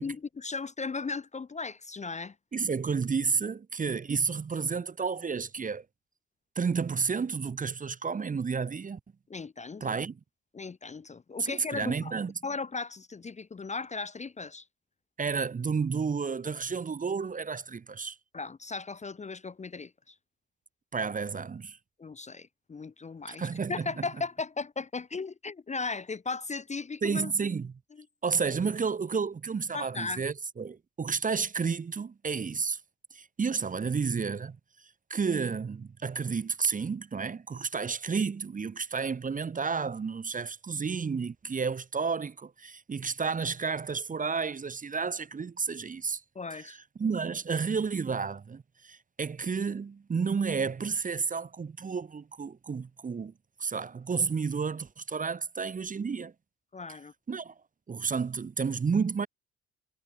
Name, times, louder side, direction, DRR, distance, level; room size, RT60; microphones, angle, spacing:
voice 1, 0.0-2.3 9.3-10.0 10.5-12.1 12.4-14.6 18.3-20.1 22.0-27.3 28.0-28.1 29.7-30.2 46.3-46.8 56.7-57.1, left 4 dB, 25° left, 0.7 m, -37 dB
voice 2, 2.5-5.8 6.6-9.0 9.8-10.2 11.4-12.3 15.2-18.2 20.9-21.8 23.3-24.1 27.0-27.7 28.2-32.8 33.1-34.6 35.1-46.2 46.6-53.3 53.6-56.3 57.3-57.5 57.9-59.3, right 5 dB, 25° right, 0.8 m, -31 dB
cardioid pair, 90°, 30 cm